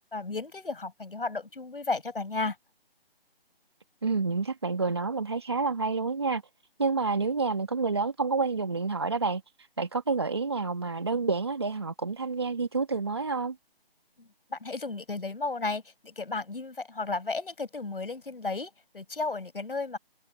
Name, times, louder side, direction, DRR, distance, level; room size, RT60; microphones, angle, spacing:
voice 1, 0.1-2.6 14.2-20.0, left 3 dB, 65° left, 6.8 m, -34 dB
voice 2, 4.0-6.4 6.8-13.6, right 4 dB, 25° right, 1.4 m, -29 dB
figure-of-eight pair, 180°, 30 cm